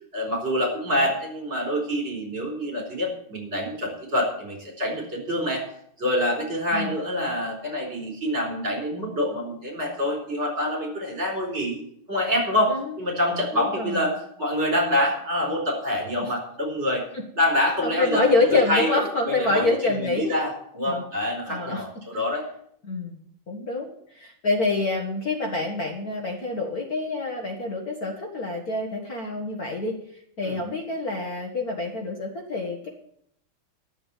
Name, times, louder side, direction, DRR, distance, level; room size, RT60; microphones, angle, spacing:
voice 1, 0.1-5.6 6.0-11.8 12.1-17.0 17.3-18.9 19.3-22.4 30.4-30.6, left 1 dB, 30° right, -1 dB, 4.6 m, -26 dB
voice 2, 13.6-14.0 17.8-20.4 20.9-21.0 21.5-21.8 22.8-23.2 23.5-29.9 30.4-32.9, left 2 dB, 45° left, 1 dB, 2.0 m, -26 dB
12.5 x 6.9 x 9.0 m, 0.70 s
omnidirectional pair, 2.3 m